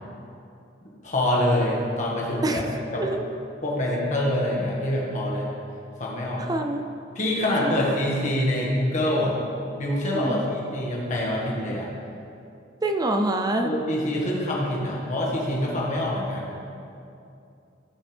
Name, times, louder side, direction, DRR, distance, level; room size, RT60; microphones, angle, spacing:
voice 1, 1.0-2.6 2.9-3.0 3.6-5.5 6.0-6.5 7.2-9.4 9.8-10.4 10.7-11.9 13.6-16.5, left 1 dB, 40° left, -4 dB, 1.8 m, -25 dB
voice 2, 6.4-6.9 7.6-7.8 10.1-10.4 12.8-13.7, right 2 dB, 20° right, 5 dB, 0.5 m, -26 dB
14.5 x 5.7 x 3.4 m, 2.6 s
head